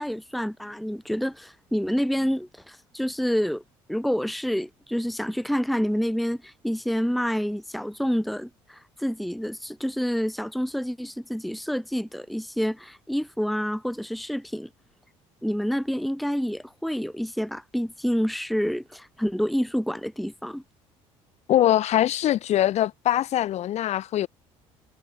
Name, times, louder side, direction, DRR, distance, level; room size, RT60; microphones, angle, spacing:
voice 1, 0.0-3.6 3.9-14.7 15.4-20.6, equal, ahead, 1.0 m, -28 dB
voice 2, 21.5-24.3, left 12 dB, 60° left, 1.6 m, -22 dB
supercardioid pair, 85°, 13 cm